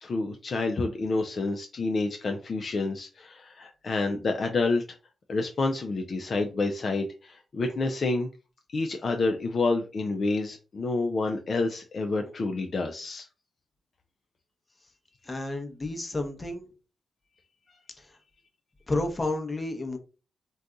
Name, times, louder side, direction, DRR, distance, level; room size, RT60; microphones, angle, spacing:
voice 1, 0.0-4.8 5.3-8.3 8.7-13.3, left 3 dB, 55° left, 4 dB, 0.4 m, -28 dB
voice 2, 15.3-16.7 18.0-18.2 18.9-20.0, left 2 dB, 25° left, 5 dB, 0.8 m, -31 dB
2.6 x 2.3 x 3.7 m, 0.32 s
cardioid pair, 65°, 0 cm